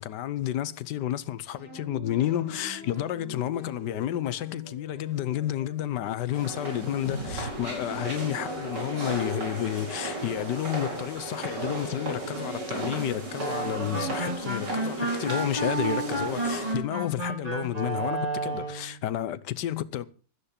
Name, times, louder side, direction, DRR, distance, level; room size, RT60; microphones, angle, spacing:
voice 1, 0.0-20.1, left 12 dB, 75° left, 1.5 m, -31 dB
sound 1, 1.6-9.0, left 1 dB, 55° right, 7.8 m, -43 dB
sound 2, 6.3-16.7, right 2 dB, 80° right, 5.4 m, -35 dB
sound 3, 13.4-18.9, right 2 dB, 20° right, 3.9 m, -31 dB
16.5 x 13.0 x 4.4 m
omnidirectional pair, 1.9 m